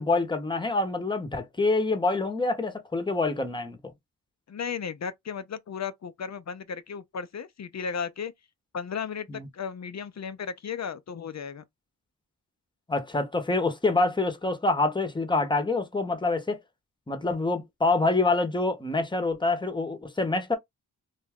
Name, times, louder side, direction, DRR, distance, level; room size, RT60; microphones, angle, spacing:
voice 1, 0.0-3.9 9.3-9.5 12.9-16.6 17.1-20.6, left 3 dB, 10° left, 0.8 m, -26 dB
voice 2, 4.5-8.3 8.7-11.6, left 6 dB, 45° left, 0.5 m, -35 dB
2.6 x 2.3 x 3.4 m
cardioid pair, 55°, 39 cm